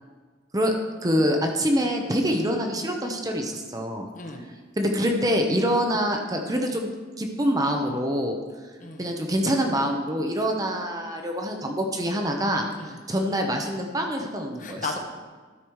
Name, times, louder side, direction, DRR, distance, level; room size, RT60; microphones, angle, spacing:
voice 1, 1.0-4.1 4.8-6.9 7.2-8.4 9.0-14.9, equal, 20° right, 3 dB, 0.7 m, -25 dB
voice 2, 4.1-4.5 8.8-9.1 12.7-13.0 14.6-15.0, left 4 dB, 40° left, 3 dB, 0.9 m, -35 dB
12.5 x 4.9 x 4.7 m, 1.4 s
head